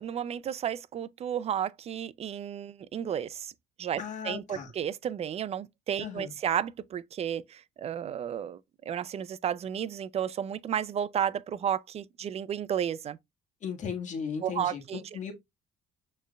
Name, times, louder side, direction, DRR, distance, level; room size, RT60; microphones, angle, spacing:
voice 1, 0.0-3.5 3.8-8.6 8.9-13.2 14.4-15.0, right 9 dB, 40° right, 0.4 m, -32 dB
voice 2, 4.0-4.7 6.0-6.3 13.6-15.3, left 6 dB, 45° left, 1.4 m, -36 dB
6.4 x 3.2 x 2.3 m
cardioid pair, 110°, 17 cm